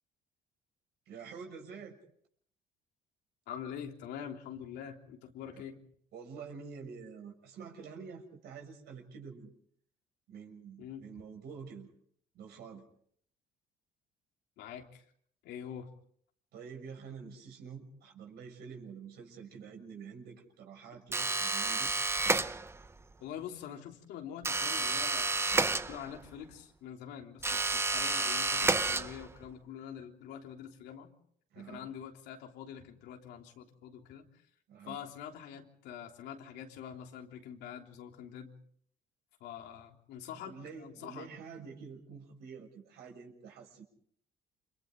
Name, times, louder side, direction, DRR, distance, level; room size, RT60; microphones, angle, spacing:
voice 1, 1.0-2.0 5.5-5.6 6.1-9.5 10.3-11.9 12.3-12.8 16.5-21.9 31.5-31.9 34.7-35.0 40.4-43.8, right 6 dB, 75° right, 2 dB, 6.8 m, -47 dB
voice 2, 3.5-5.8 10.8-11.1 14.6-15.0 15.4-15.9 23.2-31.1 31.5-34.3 34.8-38.5 39.4-41.3, left 9 dB, 85° left, 2 dB, 3.4 m, -45 dB
sound 1, 21.1-22.9 24.4-26.3 27.4-29.5, right 3 dB, 15° right, 0.8 m, -30 dB
29.5 x 26.5 x 3.9 m, 0.62 s
cardioid pair, 110°, 17 cm